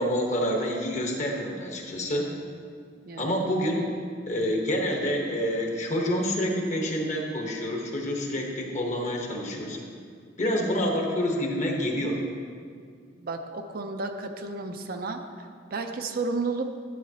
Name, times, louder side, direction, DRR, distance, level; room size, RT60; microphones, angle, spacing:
voice 1, 0.0-2.3 3.2-3.9 4.3-9.8 10.4-12.2, equal, 40° left, 0 dB, 1.1 m, -27 dB
voice 2, 3.1-3.4 13.2-15.2 15.7-16.7, right 3 dB, 50° right, 6 dB, 0.5 m, -32 dB
11.5 x 7.6 x 2.8 m, 2.1 s
head